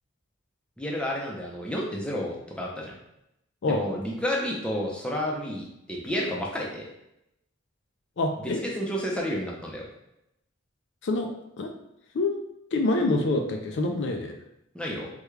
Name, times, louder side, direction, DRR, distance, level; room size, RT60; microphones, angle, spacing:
voice 1, 0.8-2.9 3.7-6.8 8.4-9.8 14.7-15.1, equal, 5° left, -3 dB, 0.5 m, -31 dB
voice 2, 8.2-8.6 11.0-11.3 11.6-11.7 12.1-12.4 12.7-14.3, left 2 dB, 60° left, 4 dB, 0.4 m, -26 dB
3.5 x 2.2 x 3.1 m, 0.82 s
head